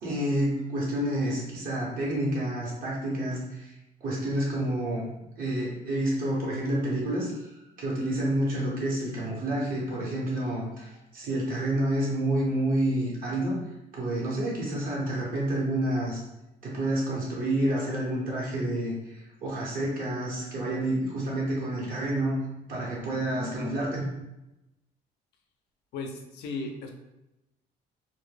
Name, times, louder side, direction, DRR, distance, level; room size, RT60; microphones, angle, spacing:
voice 1, 0.0-3.7 4.0-5.1 5.4-16.2 16.6-22.4 22.7-24.0, right 1 dB, 55° right, -5 dB, 0.9 m, -29 dB
voice 2, 25.9-26.9, left 3 dB, 80° left, 4 dB, 0.5 m, -35 dB
2.1 x 2.1 x 3.2 m, 0.93 s
cardioid pair, 110°, 17 cm